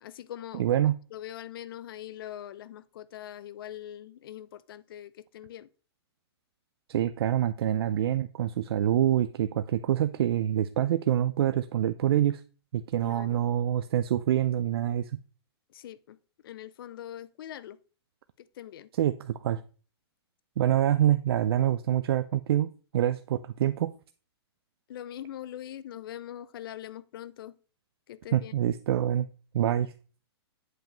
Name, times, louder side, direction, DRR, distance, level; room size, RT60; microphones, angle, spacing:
voice 1, 0.0-0.6 1.1-5.7 13.0-13.4 15.7-16.2 16.4-17.8 18.6-18.9 24.9-27.6 28.1-28.5, left 11 dB, 55° left, 0.4 m, -42 dB
voice 2, 0.5-1.0 6.9-12.4 12.7-15.1 18.9-19.6 20.6-23.9 28.3-29.3 29.5-29.9, right 11 dB, 65° right, 0.4 m, -26 dB
7.7 x 4.9 x 3.0 m
hypercardioid pair, 150°, 14 cm